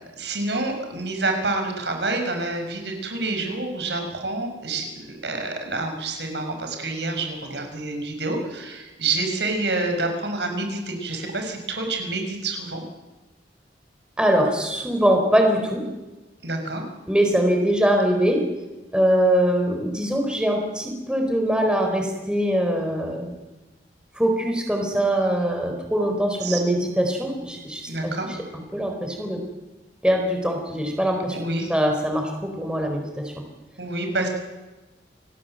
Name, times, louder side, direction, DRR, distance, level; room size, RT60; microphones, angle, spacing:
voice 1, 0.2-12.8 16.4-16.8 26.4-26.6 27.9-28.3 31.3-31.7 33.8-34.3, right 2 dB, 75° right, 4 dB, 5.7 m, -28 dB
voice 2, 14.2-15.8 17.1-18.4 18.9-23.4 24.1-28.4 28.7-29.4 30.0-31.4 31.7-33.3, equal, 5° right, 2 dB, 4.2 m, -22 dB
28.0 x 19.5 x 7.8 m, 1.1 s
head